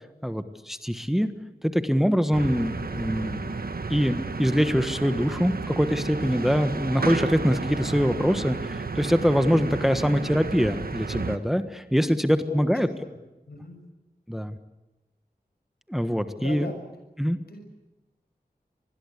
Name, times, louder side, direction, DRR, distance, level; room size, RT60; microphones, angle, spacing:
voice 1, 0.2-1.3 1.6-3.5 3.9-12.9 14.3-14.6 15.9-16.7 17.2-17.4, equal, ahead, 10 dB, 1.4 m, -24 dB
sound 1, 2.3-11.4, right 4 dB, 70° right, 1.5 m, -32 dB
voice 2, 13.5-13.8 16.4-16.8 17.5-17.6, left 1 dB, 85° left, 5 dB, 6.3 m, -38 dB
26.5 x 20.5 x 8.3 m, 1.1 s
wide cardioid pair, 70°, 16 cm